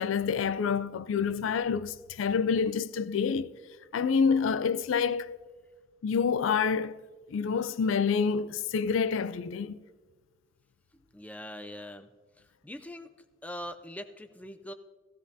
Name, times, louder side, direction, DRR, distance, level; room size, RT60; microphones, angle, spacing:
voice 1, 0.0-3.5 3.9-5.4 6.0-7.0 7.3-9.8, left 6 dB, 85° left, 0.4 m, -27 dB
voice 2, 10.9-12.1 12.4-13.1 13.4-14.7, equal, 10° left, 0.4 m, -42 dB
15.5 x 15.5 x 2.7 m
head